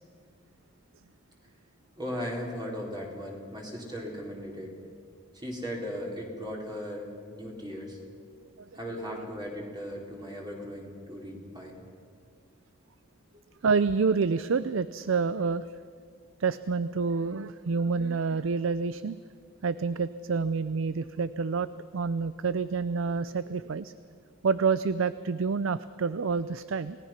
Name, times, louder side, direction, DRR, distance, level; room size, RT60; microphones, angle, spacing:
voice 1, 2.0-4.7 5.3-8.0 8.7-11.8, equal, 20° right, -2 dB, 4.0 m, -37 dB
voice 2, 13.6-15.6 16.4-19.2 19.6-21.7 21.9-23.9 24.4-27.0, right 5 dB, 75° right, 15 dB, 0.5 m, -28 dB
29.0 x 18.5 x 5.8 m, 2.1 s
head